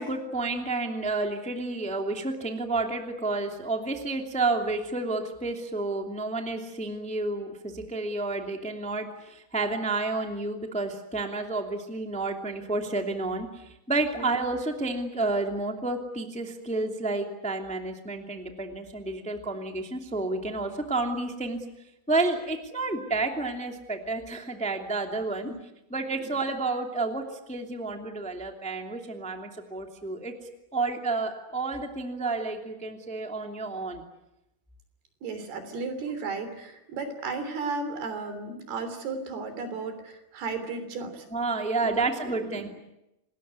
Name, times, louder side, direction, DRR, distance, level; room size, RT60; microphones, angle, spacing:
voice 1, 0.0-21.6 22.1-25.5 25.9-30.3 30.7-34.0 41.3-42.7, right 3 dB, ahead, 4 dB, 1.7 m, -30 dB
voice 2, 35.2-41.3 41.8-42.7, right 4 dB, 80° right, 9 dB, 5.2 m, -34 dB
27.0 x 20.0 x 9.6 m, 0.90 s
omnidirectional pair, 4.5 m